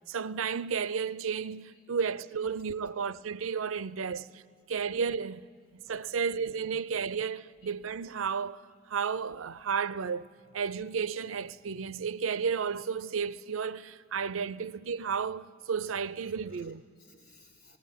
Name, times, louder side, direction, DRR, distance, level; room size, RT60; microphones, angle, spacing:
voice 1, 0.1-4.3 4.7-5.4 5.7-10.3 10.5-16.8, right 6 dB, 90° right, 0.6 m, -33 dB
voice 2, 1.7-2.2 2.4-3.0 4.0-4.2 4.7-5.0 5.7-6.9 7.6-7.7 11.9-12.0 13.7-13.9 14.4-14.5 16.2-17.8, left 1 dB, 45° left, 3.2 m, -62 dB
19.0 x 17.5 x 9.3 m
head